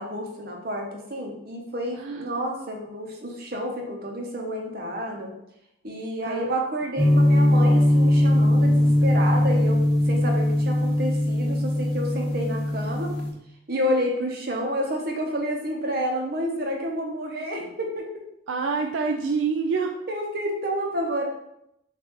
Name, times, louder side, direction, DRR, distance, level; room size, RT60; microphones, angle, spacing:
voice 1, 0.0-5.3 5.8-13.1 13.7-18.1 20.1-21.3, equal, 50° right, 1 dB, 0.9 m, -29 dB
voice 2, 2.0-2.3 6.3-6.4 18.5-20.0, right 5 dB, 75° right, 2 dB, 0.4 m, -26 dB
sound 1, 7.0-13.3, left 1 dB, 30° left, 1.6 m, -20 dB
6.6 x 2.6 x 3.1 m, 0.80 s
head